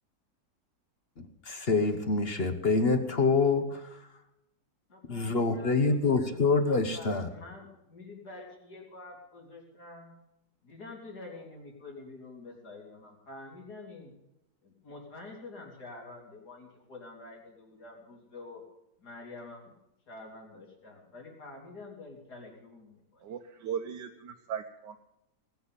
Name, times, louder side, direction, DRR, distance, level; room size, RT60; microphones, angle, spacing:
voice 1, 1.2-4.0 5.1-7.3, left 4 dB, 40° left, 8 dB, 1.2 m, -26 dB
voice 2, 4.9-10.1 10.6-14.1 14.6-18.6 19.0-19.7 20.1-23.3, left 3 dB, 60° left, -1 dB, 4.0 m, -47 dB
voice 3, 23.2-25.0, right 8 dB, 75° right, 3 dB, 1.5 m, -37 dB
19.0 x 7.1 x 8.7 m, 0.86 s
omnidirectional pair, 1.9 m